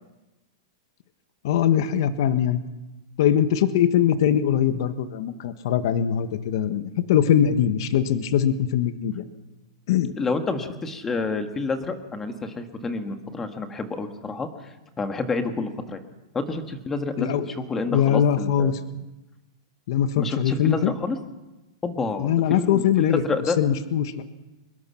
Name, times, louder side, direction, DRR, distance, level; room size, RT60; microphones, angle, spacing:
voice 1, 1.4-2.6 3.2-9.2 9.9-10.1 17.2-17.5 17.9-18.8 19.9-20.9 22.2-23.2 23.6-24.1, left 9 dB, 55° left, 10 dB, 1.4 m, -22 dB
voice 2, 10.2-14.5 15.0-16.0 16.3-18.7 20.2-21.2 21.8-23.6, left 3 dB, 15° left, 6 dB, 1.7 m, -29 dB
24.0 x 21.5 x 5.8 m, 1.0 s
supercardioid pair, 155°, 3 cm